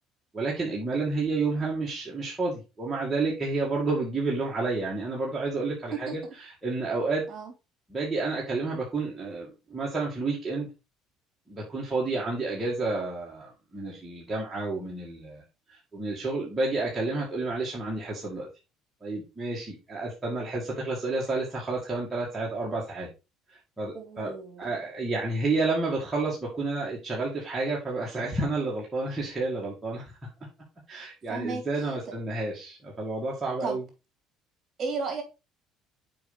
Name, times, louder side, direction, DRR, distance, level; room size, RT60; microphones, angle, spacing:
voice 1, 0.3-7.2 7.9-10.7 11.5-15.4 15.7-18.5 19.0-23.1 23.5-30.1 30.9-33.8, right 3 dB, 15° right, 2.2 m, -30 dB
voice 2, 23.9-24.7 31.3-31.6 32.1-32.2 33.6-33.8 34.8-35.2, right 4 dB, 35° right, 3.5 m, -33 dB
6.9 x 5.2 x 4.1 m
cardioid pair, 135°, 0 cm